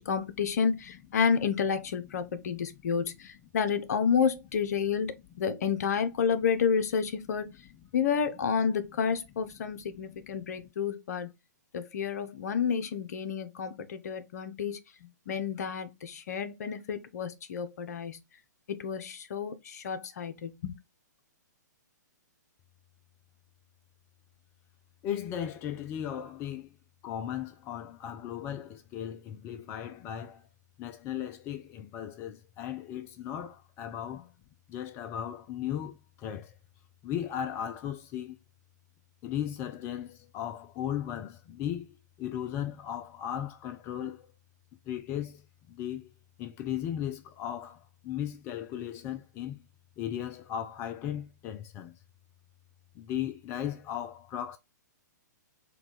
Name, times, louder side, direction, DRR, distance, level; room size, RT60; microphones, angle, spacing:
voice 1, 0.0-7.5 7.9-11.3 11.7-14.8 15.3-18.2 18.7-20.8, left 6 dB, 60° left, 0.8 m, -30 dB
voice 2, 10.1-10.7 25.0-26.8 27.0-30.4 30.8-34.3 34.7-36.5 37.0-38.4 39.2-44.3 44.9-45.4 45.7-46.1 46.4-49.6 50.0-51.9 53.0-54.6, left 10 dB, 25° left, 0.4 m, -36 dB
4.5 x 2.3 x 3.9 m
figure-of-eight pair, 125°, 10 cm